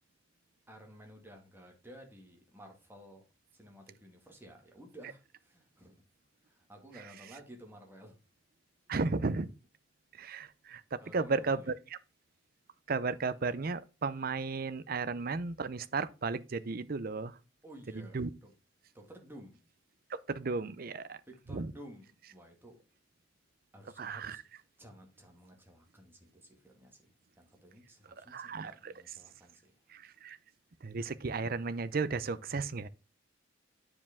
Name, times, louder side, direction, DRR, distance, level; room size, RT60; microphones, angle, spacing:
voice 1, 0.7-3.2 3.5-6.0 6.4-8.2 11.0-11.8 17.6-18.5 18.9-19.6 21.3-22.8 23.7-24.4 24.8-29.7, equal, 10° right, 1.9 m, -54 dB
voice 2, 8.9-9.5 10.2-11.7 12.9-17.3 18.1-18.3 20.3-21.2 21.5-21.7 24.0-24.4 28.3-28.9 29.9-30.4 30.8-32.9, right 4 dB, 50° right, 0.6 m, -34 dB
9.7 x 4.9 x 3.5 m
head